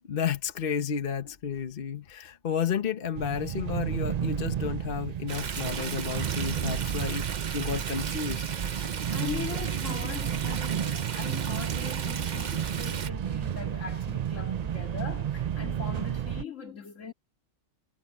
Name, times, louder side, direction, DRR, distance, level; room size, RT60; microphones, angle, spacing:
voice 1, 0.1-8.4, left 7 dB, 45° left, 1.1 m, -32 dB
sound 1, 3.1-16.4, right 9 dB, 65° right, 0.4 m, -32 dB
Stream, 5.3-13.1, right 6 dB, 40° right, 0.7 m, -36 dB
voice 2, 9.1-17.1, left 6 dB, 70° left, 2.8 m, -40 dB
omnidirectional pair, 1.3 m